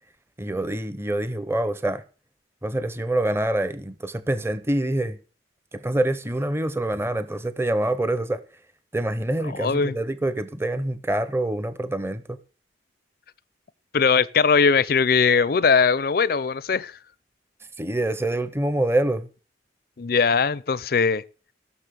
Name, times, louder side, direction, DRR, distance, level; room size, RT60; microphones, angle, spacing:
voice 1, 0.4-2.0 2.6-5.2 5.7-8.4 8.9-12.4 17.8-19.3, right 1 dB, 15° right, 0.7 m, -26 dB
voice 2, 9.6-9.9 13.9-17.0 20.0-21.2, left 5 dB, 55° left, 0.5 m, -20 dB
15.5 x 6.6 x 6.7 m
head